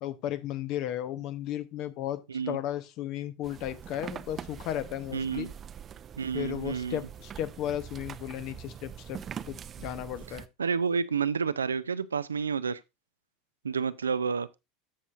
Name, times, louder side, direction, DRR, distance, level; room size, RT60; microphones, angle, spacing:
voice 1, 0.0-2.2 2.5-5.5 6.3-9.2 9.5-10.4, left 12 dB, 55° left, 0.9 m, -34 dB
sound 1, 3.4-10.5, right 8 dB, 35° right, 0.5 m, -43 dB
voice 2, 5.1-5.5 6.2-7.0 10.3-12.8 13.6-14.6, right 6 dB, 85° right, 0.4 m, -30 dB
14.0 x 5.5 x 2.5 m
hypercardioid pair, 80°, 0 cm